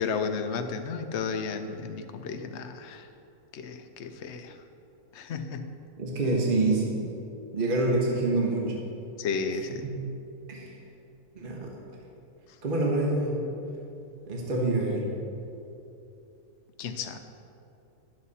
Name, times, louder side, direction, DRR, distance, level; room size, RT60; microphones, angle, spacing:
voice 1, 0.0-3.1 3.5-4.6 5.1-5.7 9.2-9.8 16.8-17.2, left 5 dB, 60° left, 7 dB, 0.8 m, -33 dB
voice 2, 6.0-7.0 7.5-8.8 9.8-10.0 10.5-10.7 11.3-11.7 12.6-13.4 14.3-15.1, right 2 dB, 40° right, -1 dB, 1.3 m, -26 dB
11.0 x 7.7 x 4.2 m, 2.8 s
omnidirectional pair, 1.5 m